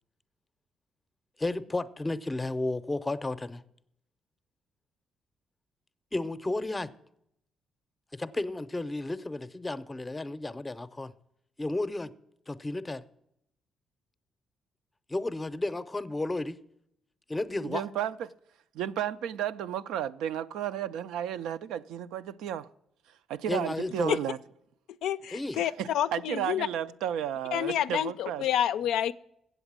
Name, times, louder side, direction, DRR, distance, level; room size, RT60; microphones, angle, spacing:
voice 1, 1.4-3.6 6.1-6.9 8.1-11.1 11.6-12.1 12.5-13.0 15.1-16.6 17.3-17.8 23.5-24.2 25.3-25.6, left 2 dB, 20° left, 0.5 m, -32 dB
voice 2, 17.6-18.1 18.7-22.7 23.3-24.4 25.6-28.5, right 10 dB, 90° right, 0.4 m, -33 dB
voice 3, 25.0-26.7 27.5-29.1, left 10 dB, 85° left, 0.4 m, -28 dB
8.0 x 7.9 x 7.3 m
cardioid pair, 90°, 0 cm